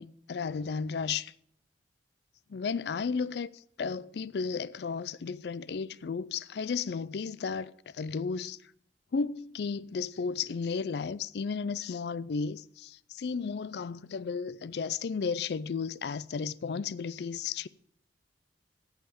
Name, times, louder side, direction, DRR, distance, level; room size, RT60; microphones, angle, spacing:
voice 1, 0.0-1.3 2.5-8.6 9.1-17.7, left 5 dB, 65° left, 0.4 m, -34 dB
15.0 x 5.6 x 6.9 m
head